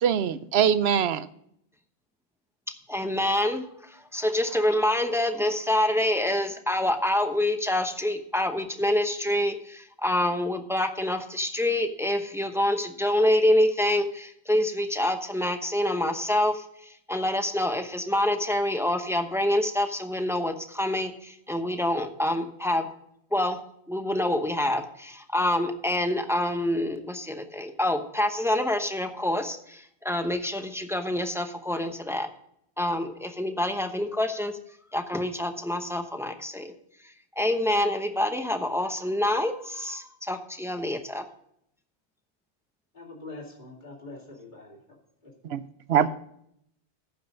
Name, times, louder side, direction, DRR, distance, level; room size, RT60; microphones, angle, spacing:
voice 1, 0.0-1.3 45.5-45.6 45.9-46.1, right 8 dB, 75° right, 14 dB, 0.9 m, -22 dB
voice 2, 2.9-22.9 23.3-23.6 23.9-32.3 32.8-34.6 34.9-36.7 37.0-41.2 45.9-46.0, left 1 dB, 5° right, 6 dB, 0.8 m, -26 dB
voice 3, 42.9-44.8 45.2-45.5, left 2 dB, 45° left, -2 dB, 2.7 m, -44 dB
14.5 x 5.5 x 5.1 m, 0.72 s
omnidirectional pair, 1.1 m